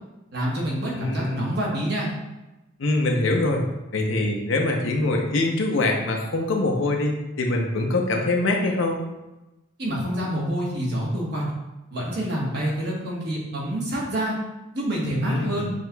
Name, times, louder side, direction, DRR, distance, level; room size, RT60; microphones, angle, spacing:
voice 1, 0.3-2.1 9.8-11.5 11.9-14.4 14.7-15.7, right 1 dB, 50° right, -4 dB, 1.1 m, -27 dB
voice 2, 1.0-1.5 2.8-3.7 3.9-9.0 15.2-15.7, left 2 dB, 70° left, 1 dB, 0.6 m, -24 dB
6.2 x 2.9 x 2.2 m, 1.0 s
head